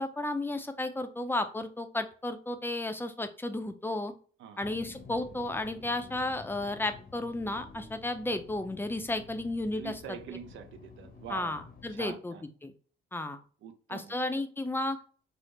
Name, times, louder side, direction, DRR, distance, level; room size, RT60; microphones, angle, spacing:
voice 1, 0.0-4.1 4.6-9.9 11.3-12.3 12.6-12.7 13.1-13.4 13.9-15.0, left 2 dB, 10° left, 8 dB, 0.5 m, -33 dB
sound 1, 4.6-12.1, left 4 dB, 50° left, 0.8 m, -51 dB
voice 2, 9.7-11.6 11.9-12.4 13.6-14.1, right 8 dB, 75° right, 8 dB, 0.5 m, -44 dB
4.9 x 2.0 x 3.1 m, 0.42 s
cardioid pair, 90°, 20 cm